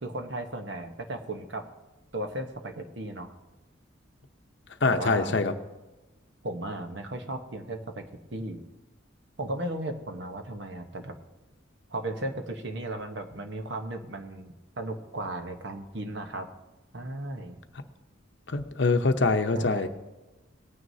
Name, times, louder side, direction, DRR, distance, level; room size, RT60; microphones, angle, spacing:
voice 1, 0.0-1.6 2.1-3.3 4.9-5.4 6.4-8.0 8.3-8.6 9.4-11.1 11.9-16.5 16.9-17.5 19.5-19.9, right 1 dB, 60° right, 5 dB, 1.1 m, -35 dB
voice 2, 4.8-5.5 18.5-19.9, left 3 dB, 60° left, 8 dB, 0.8 m, -24 dB
19.5 x 9.4 x 2.8 m, 1.1 s
head